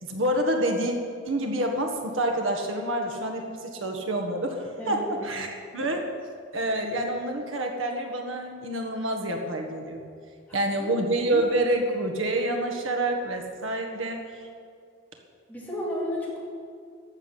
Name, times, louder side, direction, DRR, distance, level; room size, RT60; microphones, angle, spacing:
voice 1, 0.0-0.9 1.2-5.5 5.7-6.1 6.5-10.0 10.5-14.4, right 1 dB, 80° right, 3 dB, 1.6 m, -27 dB
voice 2, 4.8-5.3 10.5-11.0 15.5-16.4, left 1 dB, 10° left, -6 dB, 3.7 m, -33 dB
14.0 x 7.2 x 9.8 m, 2.2 s
head